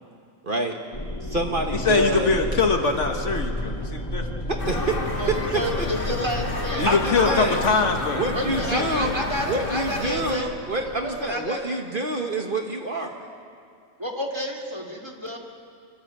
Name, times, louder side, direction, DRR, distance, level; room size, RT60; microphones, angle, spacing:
voice 1, 0.4-0.8 1.2-2.3 4.5-5.0 5.3-5.9 6.8-7.6 8.1-9.2 9.5-13.2, right 2 dB, 40° right, 2 dB, 1.4 m, -27 dB
sound 1, 0.9-11.5, left 1 dB, 15° left, 2.1 m, -33 dB
voice 2, 1.7-4.4 6.8-9.2, left 4 dB, 60° left, 4 dB, 1.7 m, -24 dB
sound 2, 4.6-10.4, left 2 dB, 45° left, 1.5 m, -30 dB
voice 3, 5.2-7.1 7.4-7.7 8.3-10.6 10.8-11.7 14.0-15.4, equal, 20° right, 1 dB, 2.2 m, -30 dB
25.5 x 13.0 x 8.8 m, 2.3 s
omnidirectional pair, 1.4 m